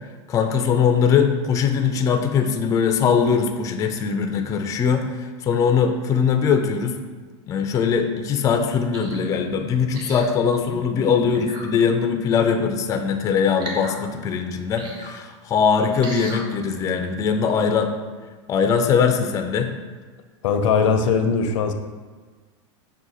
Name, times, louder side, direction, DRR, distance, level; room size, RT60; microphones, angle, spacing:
voice 1, 0.3-7.0 7.5-17.9 18.5-19.7, left 6 dB, 20° left, 5 dB, 0.3 m, -21 dB
sound 1, 8.9-9.3 9.9-10.4 11.3-11.7 13.6-14.0 14.8-15.1 16.0-16.4 17.0-17.1, right 1 dB, 30° right, 0.8 m, -36 dB
voice 2, 20.4-21.7, left 5 dB, 80° left, 7 dB, 0.5 m, -20 dB
5.9 x 2.2 x 4.0 m, 1.4 s
supercardioid pair, 125°, 16 cm